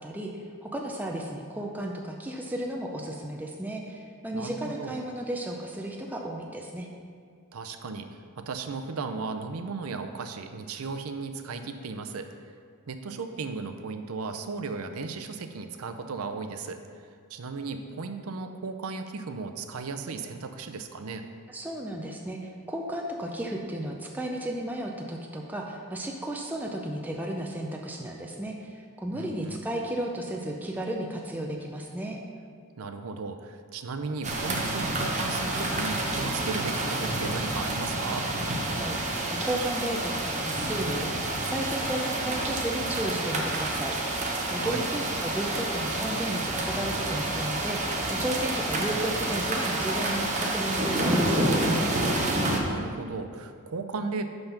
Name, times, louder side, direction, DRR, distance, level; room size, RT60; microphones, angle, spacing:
voice 1, 0.0-6.9 21.5-32.2 38.8-39.2 39.4-41.1 41.4-43.9 44.5-51.9, right 1 dB, 10° right, 0 dB, 0.5 m, -34 dB
voice 2, 4.3-5.0 7.5-8.1 8.4-12.3 12.9-16.8 17.3-21.2 29.1-29.6 32.8-38.3 44.5-44.9 52.6-54.3, right 4 dB, 80° right, 7 dB, 0.5 m, -35 dB
sound 1, 34.2-52.6, right 1 dB, 35° right, 0.8 m, -29 dB
5.9 x 5.4 x 5.7 m, 2.1 s
head